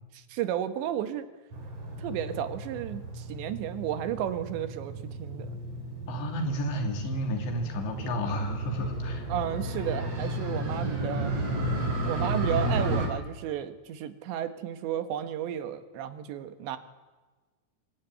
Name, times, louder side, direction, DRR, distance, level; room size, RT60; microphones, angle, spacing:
voice 1, 0.1-1.3 2.0-5.5 9.3-11.3 12.1-16.8, right 10 dB, 85° right, 9 dB, 3.8 m, -33 dB
Motorcycle, 1.5-13.1, right 1 dB, 35° right, 4.8 m, -33 dB
voice 2, 6.1-9.3 12.2-12.5, equal, 85° left, 4 dB, 5.1 m, -32 dB
26.0 x 20.5 x 9.4 m, 1.3 s
omnidirectional pair, 5.0 m